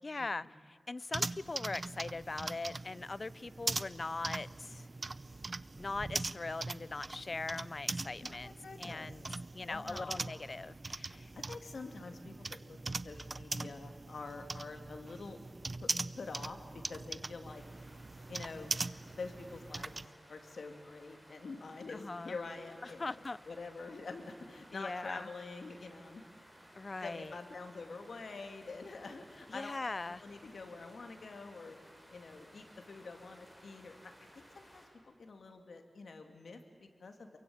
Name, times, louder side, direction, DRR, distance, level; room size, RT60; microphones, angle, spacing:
voice 1, 0.0-4.9 5.8-9.2 9.5-11.3 21.9-22.4 22.8-23.4 24.7-25.3 26.7-27.3 29.5-30.2, left 3 dB, 45° left, 18 dB, 0.6 m, -41 dB
sound 1, 1.1-20.1, right 3 dB, 40° right, 0.6 m, -41 dB
voice 2, 8.2-9.1 9.7-10.2 11.3-15.4 15.8-15.9 16.1-17.6 18.3-18.7 19.2-19.9 20.3-26.2 27.0-29.7 30.1-31.8 32.1-37.4, left 3 dB, 80° left, 5 dB, 2.7 m, -46 dB
sound 2, 17.5-34.9, equal, 5° right, 6.2 m, -59 dB
28.0 x 23.0 x 8.9 m, 2.2 s
wide cardioid pair, 90°, 0 cm